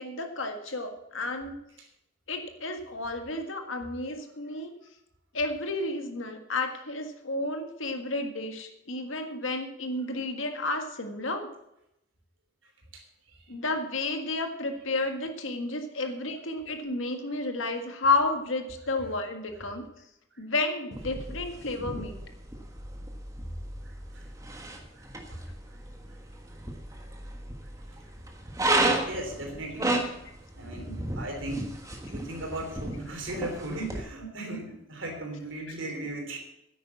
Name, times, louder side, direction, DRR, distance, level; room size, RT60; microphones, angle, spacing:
voice 1, 0.0-1.6 2.3-4.7 5.3-11.5 13.5-19.9 20.4-22.2, left 2 dB, 85° left, 5 dB, 1.7 m, -31 dB
sound 1, 20.9-34.0, right 1 dB, 15° right, 1.4 m, -33 dB
voice 2, 23.8-24.3 24.5-24.7 24.9-25.8 26.1-26.2 28.0-28.1 29.0-29.9 30.6-31.7 32.1-36.4, right 1 dB, 80° right, 3 dB, 3.3 m, -37 dB
9.8 x 9.0 x 7.2 m, 0.84 s
head